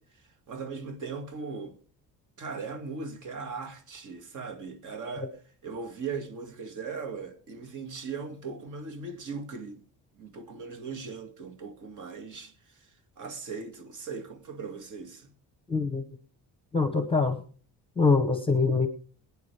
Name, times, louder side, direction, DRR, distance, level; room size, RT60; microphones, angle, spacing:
voice 1, 0.0-1.8 2.4-5.3 5.6-9.8 10.1-15.3, right 4 dB, 55° right, 2.4 m, -39 dB
voice 2, 15.7-16.0 16.7-17.4 18.0-18.9, left 4 dB, 15° left, 0.9 m, -24 dB
22.0 x 9.4 x 3.5 m
cardioid pair, 170°, 37 cm